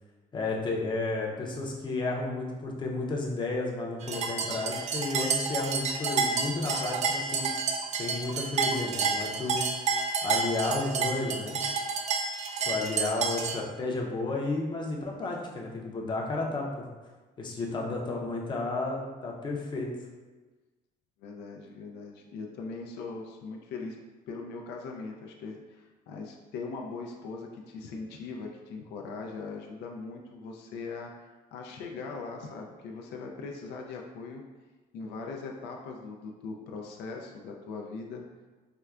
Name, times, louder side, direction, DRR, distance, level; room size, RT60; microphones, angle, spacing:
voice 1, 0.3-7.5 7.9-9.6 10.2-11.6 12.6-16.8 17.4-19.9, left 2 dB, 25° left, -1 dB, 0.6 m, -32 dB
sound 1, 4.0-13.6, right 5 dB, 45° right, 0.4 m, -30 dB
voice 2, 21.2-24.0 24.3-34.4 34.9-38.2, left 4 dB, 85° left, 1 dB, 0.4 m, -40 dB
4.4 x 2.2 x 2.4 m, 1.3 s
cardioid pair, 110°, 17 cm